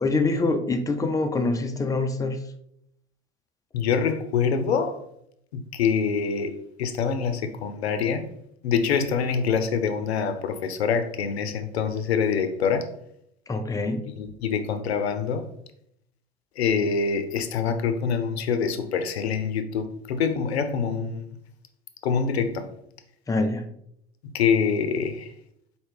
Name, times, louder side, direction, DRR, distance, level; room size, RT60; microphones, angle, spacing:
voice 1, 0.0-2.4 13.5-14.1 23.3-23.7, left 3 dB, 10° left, 0.4 m, -25 dB
voice 2, 3.7-5.0 5.5-8.3 8.6-12.9 14.0-15.4 16.6-21.4 22.0-22.7 24.3-25.3, left 6 dB, 85° left, 0.5 m, -25 dB
4.3 x 2.8 x 3.2 m
hypercardioid pair, 80°, 31 cm